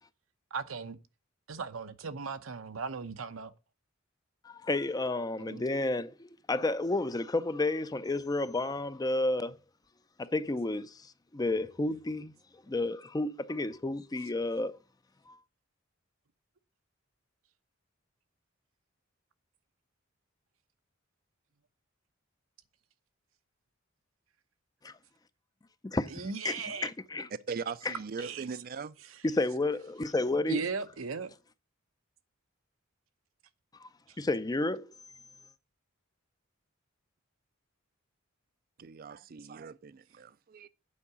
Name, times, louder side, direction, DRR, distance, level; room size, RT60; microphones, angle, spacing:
voice 1, 0.5-1.0 1.5-3.5 5.4-5.6 26.1-26.9 28.2-28.5 30.5-31.3 34.1-34.2, right 4 dB, 90° right, 0.9 m, -37 dB
voice 2, 4.4-9.6 10.2-11.0 11.3-12.3 12.7-14.8 15.3-15.4 24.8-24.9 25.8-27.3 27.9-28.0 29.2-30.6 33.8-33.9 34.2-34.9, left 2 dB, 20° left, 0.5 m, -31 dB
voice 3, 27.5-29.0 38.8-40.7, right 5 dB, 45° right, 0.4 m, -40 dB
8.6 x 4.8 x 6.7 m
head